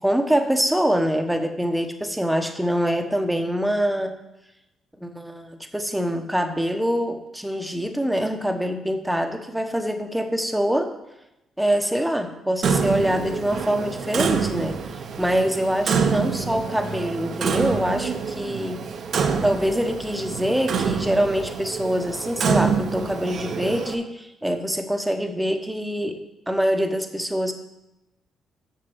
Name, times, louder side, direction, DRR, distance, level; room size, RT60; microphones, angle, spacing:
voice 1, 0.0-4.2 5.0-10.9 11.6-18.8 19.4-27.5, equal, 5° right, 5 dB, 1.1 m, -24 dB
Clock, 12.6-23.9, right 6 dB, 60° right, 0.9 m, -26 dB
6.7 x 6.5 x 7.2 m, 0.92 s
cardioid pair, 90°, 0 cm